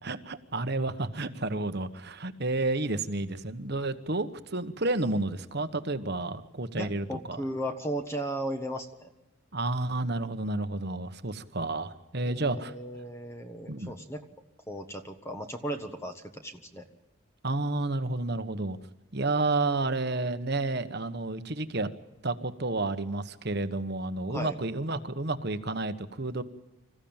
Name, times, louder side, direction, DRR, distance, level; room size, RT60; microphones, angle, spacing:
voice 1, 0.0-7.4 9.5-12.7 13.7-14.0 17.4-18.8 19.1-21.9 22.2-26.4, right 2 dB, 50° right, 10 dB, 1.2 m, -31 dB
voice 2, 6.8-9.1 12.2-14.2 14.7-16.8 24.3-24.6, equal, 10° left, 5 dB, 1.4 m, -36 dB
26.5 x 15.0 x 8.9 m, 1.0 s
head